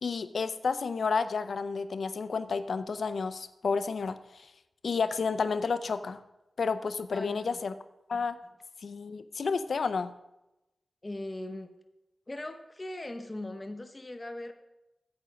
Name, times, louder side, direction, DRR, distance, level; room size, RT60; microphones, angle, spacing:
voice 1, 0.0-4.5 4.8-6.2 6.6-7.7 8.1-8.4 8.8-10.1, left 5 dB, 75° left, 12 dB, 0.5 m, -31 dB
voice 2, 7.1-7.6 11.0-11.7 12.3-14.5, left 1 dB, 25° left, 6 dB, 0.8 m, -39 dB
8.8 x 8.0 x 5.1 m, 0.95 s
wide cardioid pair, 100°, 0 cm